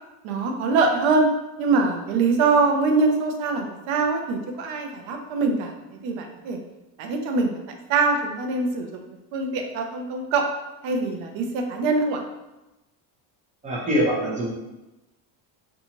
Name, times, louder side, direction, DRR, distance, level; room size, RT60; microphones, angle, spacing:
voice 1, 0.2-1.3 1.6-6.6 7.0-7.6 7.9-9.0 9.3-10.4 10.8-12.2, right 3 dB, 70° right, 3 dB, 0.6 m, -23 dB
voice 2, 13.6-14.5, equal, 15° right, -5 dB, 0.5 m, -23 dB
2.6 x 2.3 x 2.8 m, 1.0 s
cardioid pair, 160°, 47 cm